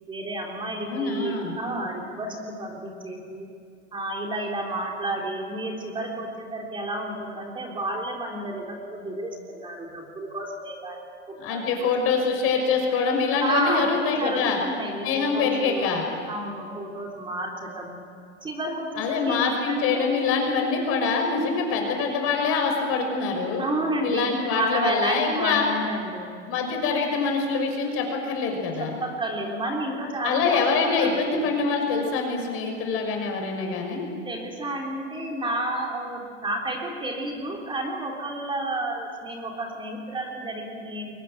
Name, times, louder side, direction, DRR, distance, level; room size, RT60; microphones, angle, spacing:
voice 1, 0.1-3.5 3.9-11.2 11.5-11.9 12.4-12.5 13.4-13.9 14.2-15.8 16.3-18.0 18.4-20.1 23.6-26.3 28.8-31.3 34.3-41.2, right 1 dB, 15° right, 0 dB, 3.7 m, -31 dB
voice 2, 0.8-1.5 11.4-14.6 15.0-16.0 19.0-23.6 24.0-25.7 26.5-28.9 30.2-34.1, left 5 dB, 40° left, 3 dB, 6.1 m, -25 dB
23.0 x 19.0 x 9.6 m, 2.3 s
hypercardioid pair, 130°, 36 cm